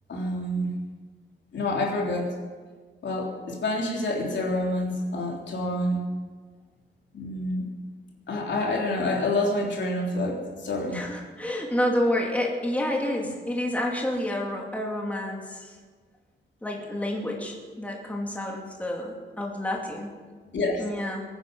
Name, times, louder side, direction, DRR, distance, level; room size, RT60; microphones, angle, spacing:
voice 1, 0.1-0.8 1.5-2.3 3.0-6.0 7.1-7.7 8.3-11.0 20.5-20.8, left 1 dB, 70° left, -2 dB, 3.5 m, -27 dB
voice 2, 10.9-15.7 16.6-20.1 20.8-21.2, left 1 dB, 5° left, -1 dB, 2.5 m, -29 dB
23.0 x 9.8 x 5.5 m, 1.5 s
wide cardioid pair, 135°, 20 cm